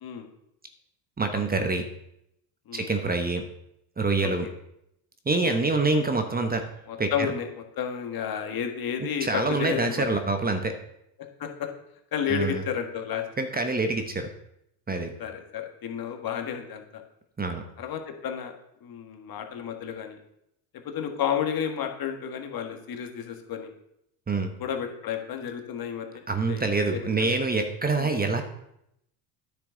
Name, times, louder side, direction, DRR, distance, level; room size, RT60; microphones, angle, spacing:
voice 1, 1.2-1.8 2.7-3.4 4.0-4.5 5.3-6.7 7.0-7.3 9.2-10.8 12.3-12.6 13.4-14.3 14.9-15.1 17.4-17.6 24.3-24.5 26.3-28.4, right 3 dB, 20° right, 6 dB, 1.1 m, -26 dB
voice 2, 6.9-10.1 11.4-11.7 12.1-13.2 15.2-17.0 17.8-18.5 18.8-20.2 20.9-23.7 24.6-26.2 26.5-27.4 28.0-28.1, left 8 dB, 50° left, 4 dB, 1.7 m, -32 dB
9.8 x 6.8 x 3.9 m, 0.79 s
supercardioid pair, 80°, 47 cm